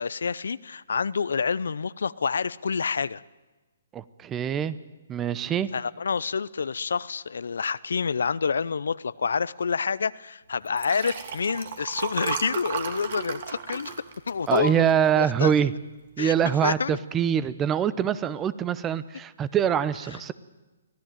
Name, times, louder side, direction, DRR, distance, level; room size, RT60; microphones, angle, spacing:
voice 1, 0.0-3.2 5.7-13.9 14.3-15.7 16.2-16.3 16.6-17.0, left 5 dB, 75° left, 18 dB, 0.6 m, -28 dB
voice 2, 3.9-4.8 5.1-5.7 14.5-15.7 16.2-20.3, right 9 dB, 15° right, 17 dB, 0.8 m, -24 dB
Liquid, 10.7-15.3 15.8-16.1 16.3-16.4, right 7 dB, 55° right, 2.5 m, -34 dB
24.5 x 16.0 x 9.1 m, 1.1 s
hypercardioid pair, 145°, 0 cm